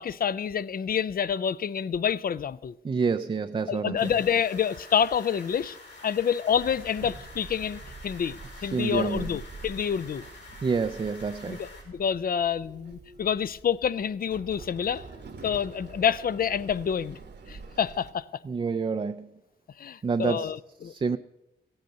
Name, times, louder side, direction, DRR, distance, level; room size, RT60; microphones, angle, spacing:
voice 1, 0.0-2.7 3.7-5.8 6.0-8.4 8.6-10.2 11.5-15.0 15.4-17.2 17.5-18.3 19.8-21.2, left 8 dB, 55° left, 0.4 m, -28 dB
voice 2, 2.8-4.1 8.7-9.2 10.6-11.6 18.4-19.3 20.0-20.5 20.8-21.2, right 5 dB, 30° right, 0.4 m, -28 dB
sound 1, 4.0-11.8, left 2 dB, 85° left, 5.1 m, -48 dB
Walk footsteps / Chatter / Hiss, 6.5-18.1, right 4 dB, 70° right, 1.3 m, -46 dB
16.0 x 7.9 x 6.7 m
wide cardioid pair, 160°, 18 cm